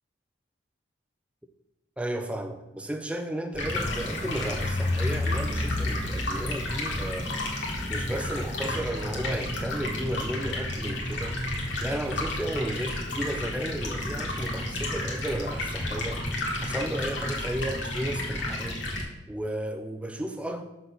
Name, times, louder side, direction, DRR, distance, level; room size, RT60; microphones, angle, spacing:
voice 1, 2.0-7.6 7.9-18.8 19.3-20.6, right 1 dB, 5° right, 0.4 m, -33 dB
Stream, 3.5-19.0, left 1 dB, 60° left, 1.5 m, -32 dB
sound 1, 3.8-8.7, left 2 dB, 35° left, 0.8 m, -32 dB
6.7 x 4.0 x 5.8 m
head